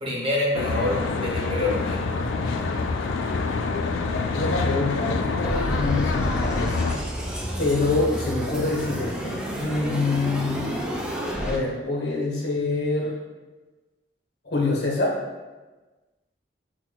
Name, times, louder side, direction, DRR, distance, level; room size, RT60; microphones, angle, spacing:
voice 1, 0.0-2.1, left 1 dB, 30° right, -4 dB, 0.7 m, -26 dB
Traffic noise roadway noise, 0.5-7.0, left 4 dB, 85° left, 0.3 m, -26 dB
voice 2, 4.3-7.0 7.6-10.8 11.4-13.2 14.4-15.2, left 3 dB, 60° left, -2 dB, 0.7 m, -26 dB
sound 1, 5.4-11.6, equal, 5° right, 0.3 m, -30 dB
6.0 x 2.1 x 2.2 m, 1.2 s
head